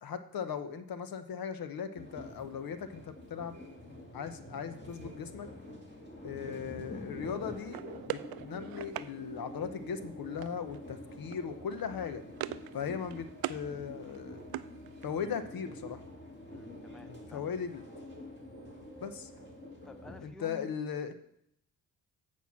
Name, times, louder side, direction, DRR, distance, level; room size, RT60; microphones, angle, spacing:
voice 1, 0.0-3.6 4.1-5.5 6.2-12.2 12.7-14.5 15.0-16.0 17.0-17.9 19.0-19.3 20.2-21.1, left 7 dB, 65° left, 10 dB, 0.9 m, -38 dB
sound 1, 2.0-20.2, left 1 dB, 25° left, 2.2 m, -47 dB
sound 2, 7.7-9.1 10.4-10.8 11.1-11.4 11.7-12.7 13.0-13.6 14.0-15.3, right 14 dB, 65° right, 0.5 m, -41 dB
voice 2, 16.5-17.5 19.8-20.7, equal, ahead, 10 dB, 0.6 m, -52 dB
8.2 x 4.4 x 7.2 m, 0.72 s
cardioid pair, 70°, 39 cm